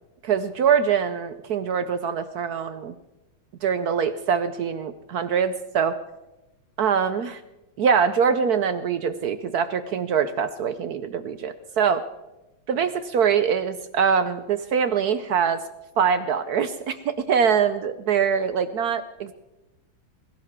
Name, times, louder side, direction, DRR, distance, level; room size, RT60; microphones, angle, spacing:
voice 1, 0.2-3.0 3.6-6.0 6.8-7.4 7.8-12.0 12.7-15.6 16.0-19.3, right 7 dB, 65° right, 12 dB, 1.0 m, -23 dB
21.0 x 16.5 x 3.6 m, 0.96 s
omnidirectional pair, 2.2 m